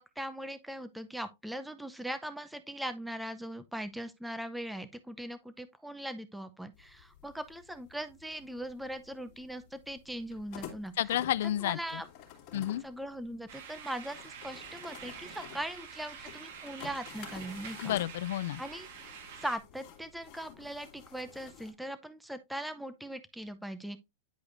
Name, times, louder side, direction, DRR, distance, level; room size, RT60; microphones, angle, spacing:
voice 1, 0.0-10.9 11.6-12.1 12.5-17.9 18.6-24.0, right 1 dB, ahead, 0.6 m, -40 dB
sound 1, 6.7-21.7, left 9 dB, 40° left, 2.8 m, -51 dB
voice 2, 11.0-12.0 12.5-12.8 17.8-18.6, left 13 dB, 70° left, 0.4 m, -31 dB
sound 2, 13.5-19.6, right 7 dB, 55° right, 1.9 m, -47 dB
10.0 x 4.8 x 2.5 m
supercardioid pair, 145°, 0 cm